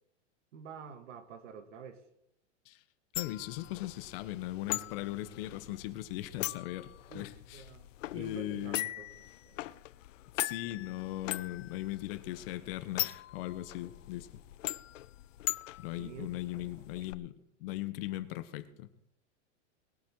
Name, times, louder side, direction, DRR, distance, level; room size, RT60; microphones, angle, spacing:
voice 1, 0.5-2.0 7.1-7.2 7.5-7.9 8.1-9.1 9.5-9.6 16.0-17.0, right 6 dB, 80° right, 10 dB, 1.9 m, -48 dB
sound 1, 3.1-17.1, left 15 dB, 90° left, 0.6 m, -41 dB
voice 2, 3.1-7.7 8.1-8.9 10.3-14.3 15.8-19.0, left 15 dB, 50° left, 12 dB, 1.1 m, -39 dB
20.0 x 8.2 x 4.8 m, 0.81 s
supercardioid pair, 145°, 37 cm